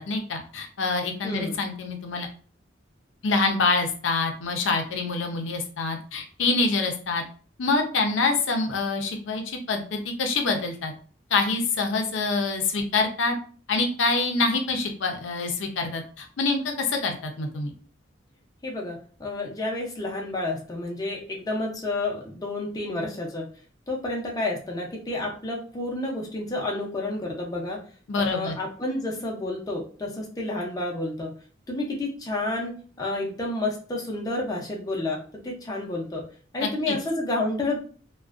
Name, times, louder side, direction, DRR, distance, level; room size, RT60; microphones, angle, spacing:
voice 1, 0.0-2.3 3.2-7.2 7.6-10.9 11.3-13.4 13.7-17.7 28.1-28.6 36.6-37.0, left 3 dB, 85° left, 4 dB, 0.5 m, -26 dB
voice 2, 1.2-1.5 18.6-23.5 23.9-27.8 28.2-31.3 31.7-32.7 33.0-35.2 35.4-36.2 36.5-37.8, left 2 dB, 20° left, -1 dB, 0.5 m, -30 dB
2.4 x 2.2 x 2.3 m, 0.41 s
head